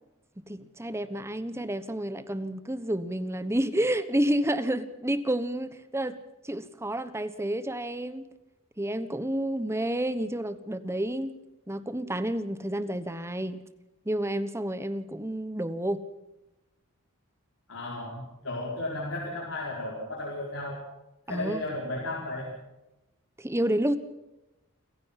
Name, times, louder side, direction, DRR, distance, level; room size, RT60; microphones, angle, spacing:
voice 1, 0.5-8.3 8.8-11.3 11.7-13.6 14.0-16.0 21.3-21.6 23.4-24.0, right 1 dB, 15° right, 13 dB, 1.1 m, -30 dB
voice 2, 17.7-20.8 21.3-22.6, left 2 dB, 70° left, -3 dB, 4.9 m, -34 dB
28.5 x 16.0 x 5.9 m, 0.98 s
head